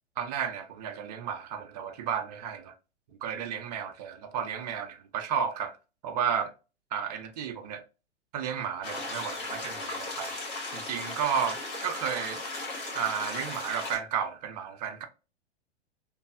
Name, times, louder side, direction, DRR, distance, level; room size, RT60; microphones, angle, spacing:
voice 1, 0.2-2.7 3.2-5.8 6.0-6.5 6.9-7.8 8.3-10.4 10.7-12.4 12.9-15.1, right 7 dB, 35° right, 0.5 m, -32 dB
sound 1, 8.8-14.0, left 2 dB, 40° left, 1.6 m, -36 dB
3.0 x 2.2 x 2.3 m
figure-of-eight pair, 105°, 34 cm